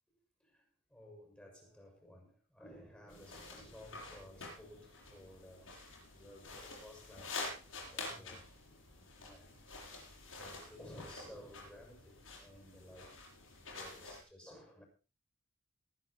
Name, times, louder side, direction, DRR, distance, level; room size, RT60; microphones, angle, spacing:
voice 1, 0.9-8.5 8.9-9.9 10.4-13.2 13.7-14.8, left 1 dB, 5° left, 6.5 m, -56 dB
sound 1, 3.1-14.2, left 3 dB, 80° left, 7.8 m, -48 dB
22.5 x 9.5 x 4.2 m
head